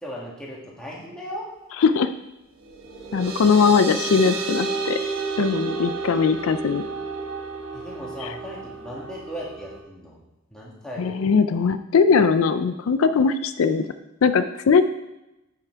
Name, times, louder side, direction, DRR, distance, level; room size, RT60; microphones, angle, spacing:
voice 1, 0.0-1.5 7.7-10.2 10.5-11.4, equal, 5° left, -5 dB, 1.8 m, -37 dB
voice 2, 1.8-2.1 3.1-5.0 5.4-6.8 8.2-8.3 11.0-13.9 14.2-14.8, left 5 dB, 75° left, 11 dB, 0.4 m, -20 dB
sound 1, 2.6-9.8, right 3 dB, 70° right, 1.0 m, -31 dB
9.1 x 5.7 x 4.6 m, 0.94 s
head